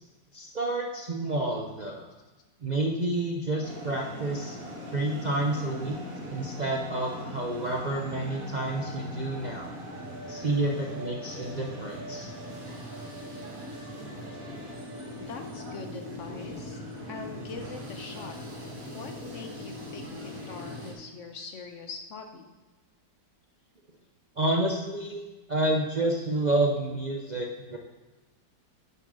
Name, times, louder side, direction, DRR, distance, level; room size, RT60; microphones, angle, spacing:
voice 1, 0.3-2.1 2.6-4.6 4.9-5.9 6.3-9.7 10.3-12.3 24.4-27.8, right 2 dB, 70° right, 0 dB, 0.4 m, -29 dB
sound 1, 3.6-20.9, equal, 50° right, 2.2 m, -40 dB
voice 2, 15.1-16.8 17.1-18.4 18.9-22.5, left 4 dB, 55° left, 5 dB, 0.9 m, -42 dB
7.5 x 6.5 x 5.4 m, 1.2 s
omnidirectional pair, 1.9 m